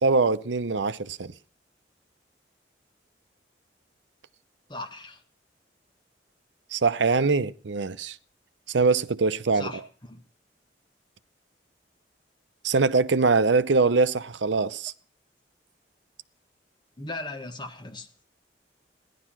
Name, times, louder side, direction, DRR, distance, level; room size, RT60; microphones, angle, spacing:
voice 1, 0.0-1.3 6.7-8.2 8.7-9.7 12.6-14.9, right 4 dB, 80° right, 0.7 m, -23 dB
voice 2, 4.7-5.2 9.5-10.2 17.0-18.1, left 2 dB, 25° left, 1.8 m, -38 dB
17.0 x 11.0 x 6.1 m
head